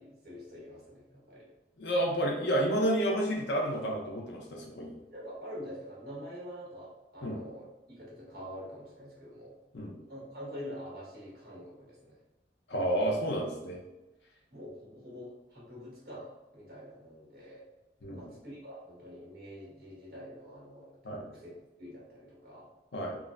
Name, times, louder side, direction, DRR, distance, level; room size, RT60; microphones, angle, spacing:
voice 1, 0.0-1.5 5.1-9.6 10.0-12.2 14.5-17.6 18.1-21.5 21.8-22.7, equal, 55° right, -5 dB, 1.4 m, -46 dB
voice 2, 1.8-4.9 7.2-7.4 9.7-9.9 12.7-13.8 18.0-18.2 21.0-21.3 22.9-23.2, right 1 dB, 80° left, -1 dB, 0.7 m, -30 dB
3.7 x 2.1 x 2.4 m, 1.0 s
head